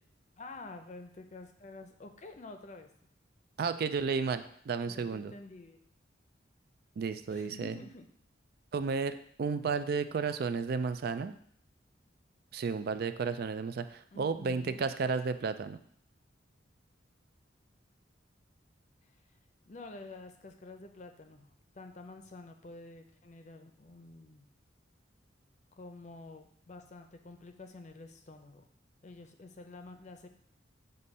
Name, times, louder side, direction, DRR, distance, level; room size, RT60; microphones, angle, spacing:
voice 1, 0.4-2.9 4.8-5.8 7.3-8.1 14.1-14.9 19.7-24.5 25.8-28.7 29.0-30.3, left 2 dB, 40° left, 6 dB, 0.6 m, -49 dB
voice 2, 3.6-5.3 7.0-7.7 8.7-11.3 12.5-15.8, right 5 dB, 55° right, 11 dB, 0.3 m, -33 dB
6.8 x 2.7 x 5.4 m, 0.63 s
head